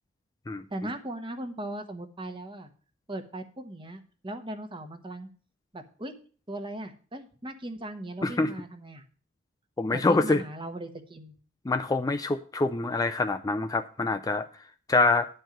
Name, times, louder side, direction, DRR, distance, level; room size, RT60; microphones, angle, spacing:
voice 1, 0.7-2.7 3.1-5.3 5.7-6.1 6.5-9.0 9.9-11.3, right 1 dB, 25° right, 6 dB, 1.1 m, -38 dB
voice 2, 9.8-10.4 11.7-14.5 14.9-15.3, left 3 dB, 20° left, 7 dB, 0.3 m, -25 dB
10.5 x 4.5 x 7.8 m, 0.41 s
head